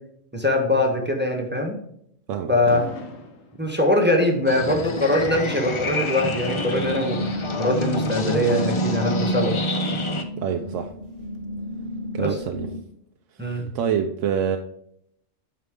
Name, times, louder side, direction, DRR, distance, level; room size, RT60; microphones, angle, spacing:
voice 1, 0.3-1.8 2.5-2.8 3.6-7.2 7.6-9.5 12.2-12.4 13.4-13.7, left 1 dB, 10° right, 1 dB, 1.1 m, -22 dB
voice 2, 2.3-2.8 10.4-10.9 12.1-12.7 13.4-14.6, right 8 dB, 75° right, 5 dB, 0.9 m, -26 dB
Fireworks, 2.6-4.0 5.4-6.9, left 2 dB, 75° left, 1.5 m, -39 dB
sound 1, 4.5-10.2, left 1 dB, 35° left, 0.5 m, -27 dB
sound 2, 6.8-12.8, left 1 dB, 35° right, 0.9 m, -34 dB
9.3 x 4.8 x 3.7 m, 0.72 s
omnidirectional pair, 1.3 m